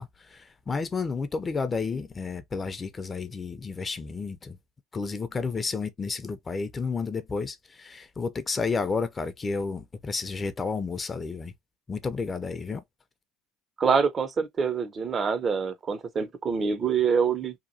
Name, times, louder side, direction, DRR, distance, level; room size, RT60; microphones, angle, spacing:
voice 1, 0.0-4.6 4.9-11.5 11.9-12.8, left 4 dB, 30° left, 0.5 m, -31 dB
voice 2, 13.8-17.5, right 6 dB, 40° right, 0.5 m, -25 dB
2.9 x 2.2 x 2.6 m
supercardioid pair, 80°, 0 cm